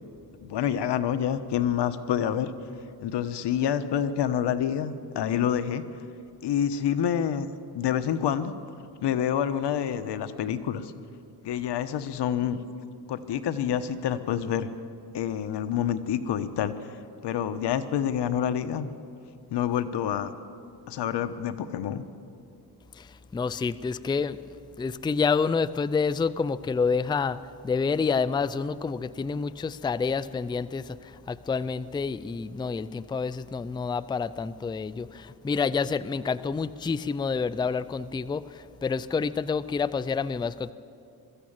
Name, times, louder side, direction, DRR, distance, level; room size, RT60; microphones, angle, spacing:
voice 1, 0.4-2.5 3.0-5.8 6.4-7.5 7.7-8.5 9.0-10.9 11.4-12.6 13.1-14.7 15.1-17.0 17.2-18.9 19.5-20.3 20.9-22.0, left 9 dB, 90° left, 10 dB, 1.1 m, -27 dB
voice 2, 22.9-24.4 24.8-27.4 27.6-40.7, left 5 dB, 10° left, 15 dB, 0.4 m, -28 dB
21.5 x 14.0 x 8.8 m, 2.6 s
cardioid pair, 115°, 40 cm